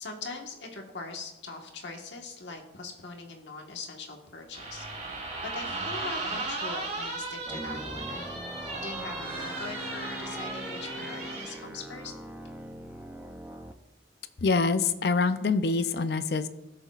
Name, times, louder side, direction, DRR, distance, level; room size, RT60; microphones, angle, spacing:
voice 1, 0.0-8.2 8.8-12.1, left 3 dB, 85° left, 2 dB, 1.5 m, -42 dB
sound 1, 4.5-11.6, right 3 dB, 40° right, 3.6 m, -36 dB
sound 2, 7.5-13.7, right 1 dB, 10° right, 0.5 m, -42 dB
Brass instrument, 8.1-11.9, left 1 dB, 10° left, 1.6 m, -44 dB
voice 2, 14.4-16.5, left 4 dB, 60° left, 11 dB, 0.5 m, -25 dB
17.0 x 6.8 x 2.4 m, 0.98 s
head